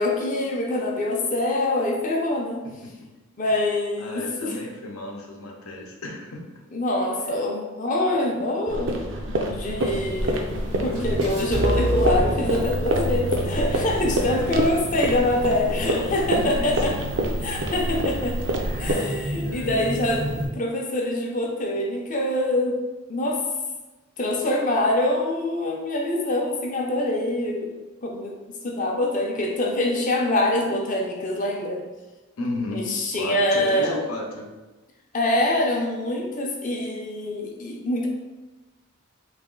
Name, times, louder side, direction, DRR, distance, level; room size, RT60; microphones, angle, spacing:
voice 1, 0.0-2.7 3.4-4.6 6.7-9.0 9.3-17.0 17.4-18.4 18.8-22.8 23.1-23.4 24.2-28.4 28.6-31.8 32.7-34.0 35.1-38.1, left 1 dB, 40° left, 1 dB, 0.6 m, -25 dB
voice 2, 4.0-6.4 14.3-14.4 15.7-17.0 17.4-17.8 18.6-19.0 19.4-20.0 32.4-32.9 33.1-34.5, left 2 dB, 90° left, 1 dB, 0.8 m, -34 dB
sound 1, 8.7-18.9, right 1 dB, 60° right, 0.5 m, -27 dB
sound 2, 9.8-20.5, equal, 85° right, 1.3 m, -31 dB
3.2 x 3.0 x 3.7 m, 1.1 s
head